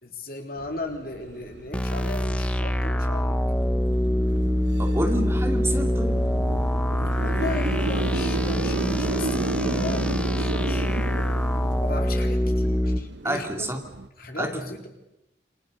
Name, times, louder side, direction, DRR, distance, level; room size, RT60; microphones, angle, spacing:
voice 1, 0.0-3.4 7.2-11.3 11.8-13.7 14.2-14.9, left 2 dB, 55° left, 3 dB, 3.8 m, -36 dB
sound 1, 0.6-14.1, right 2 dB, 90° right, 1.0 m, -33 dB
sound 2, 1.7-13.0, equal, 5° left, 1.0 m, -25 dB
voice 2, 4.8-6.2 13.2-13.8 14.4-14.5, right 1 dB, 15° right, 4 dB, 2.5 m, -28 dB
27.5 x 26.0 x 6.8 m, 0.87 s
head